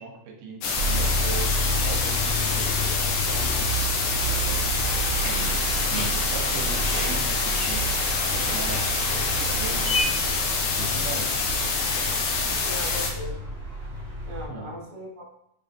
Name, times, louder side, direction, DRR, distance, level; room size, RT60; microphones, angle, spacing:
voice 1, 0.0-4.9 5.2-7.8 8.3-10.3 10.8-11.4 14.5-14.7, right 5 dB, 80° right, 0 dB, 2.2 m, -39 dB
sound 1, 0.6-13.1, left 4 dB, 75° left, 1.9 m, -26 dB
sound 2, 0.7-14.5, right 1 dB, 30° right, 1.3 m, -30 dB
sound 3, 4.8-10.0, left 1 dB, 35° left, 1.7 m, -33 dB
voice 2, 12.6-13.4 14.2-15.2, left 1 dB, 50° right, -6 dB, 1.4 m, -38 dB
5.6 x 3.3 x 2.6 m, 0.80 s
omnidirectional pair, 3.7 m